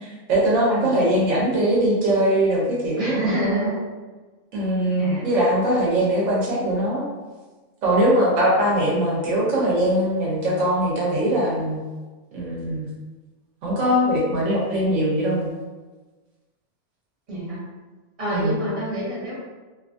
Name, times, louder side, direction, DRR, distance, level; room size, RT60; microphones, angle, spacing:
voice 1, 0.0-3.2 4.5-7.0 7.8-11.8 12.3-12.9 13.6-15.5 18.3-18.6, right 1 dB, 75° right, -4 dB, 1.0 m, -21 dB
voice 2, 3.0-3.8 5.0-5.3 17.3-17.6 18.2-19.3, right 1 dB, 30° right, -6 dB, 0.9 m, -27 dB
2.7 x 2.3 x 2.5 m, 1.3 s
omnidirectional pair, 1.4 m